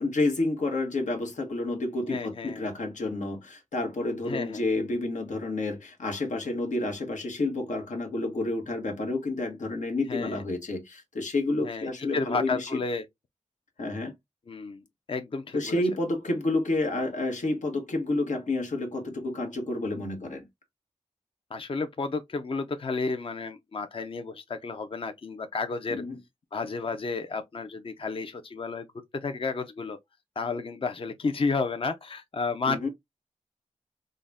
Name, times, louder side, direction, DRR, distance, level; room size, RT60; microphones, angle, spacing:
voice 1, 0.0-12.7 13.8-14.1 15.5-20.4 25.9-26.2 32.7-32.9, left 2 dB, 90° left, 1.1 m, -29 dB
voice 2, 2.1-2.7 4.2-4.6 10.1-10.4 11.6-13.1 14.5-15.8 21.5-26.0 26.5-28.9 29.1-30.0 30.4-32.9, left 4 dB, 45° left, 0.5 m, -32 dB
3.8 x 2.1 x 3.4 m
wide cardioid pair, 80°, 12 cm